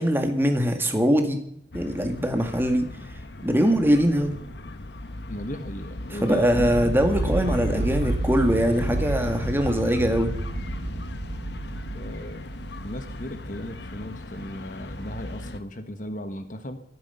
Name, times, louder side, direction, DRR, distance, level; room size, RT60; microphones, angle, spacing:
voice 1, 0.0-1.4 1.7-2.9 3.4-4.3 6.1-10.3, equal, 10° right, 5 dB, 1.9 m, -22 dB
sound 1, 1.7-15.6, left 1 dB, 70° left, 1.1 m, -36 dB
voice 2, 5.3-6.7 7.0-7.4 11.9-12.5 12.8-16.8, left 1 dB, 45° left, 9 dB, 1.3 m, -36 dB
sound 2, 6.5-14.7, right 2 dB, 70° right, 1.1 m, -32 dB
23.5 x 9.5 x 5.6 m, 0.70 s
head